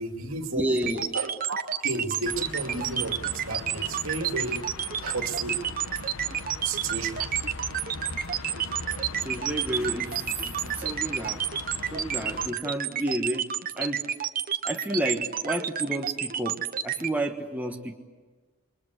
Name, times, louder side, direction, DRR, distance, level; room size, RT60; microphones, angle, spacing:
voice 1, 0.0-0.7 1.1-4.6 5.0-5.6 6.6-7.2, right 3 dB, 70° right, 4 dB, 2.6 m, -33 dB
voice 2, 0.5-1.1 7.2-7.3 9.2-11.4 11.9-13.4 13.8-14.0 14.6-18.0, right 1 dB, 5° right, 1 dB, 1.3 m, -31 dB
sound 1, 0.8-17.1, right 9 dB, 40° right, 1.0 m, -29 dB
sound 2, 2.2-12.5, left 3 dB, 70° left, 1.1 m, -40 dB
28.5 x 23.0 x 8.2 m, 1.4 s
head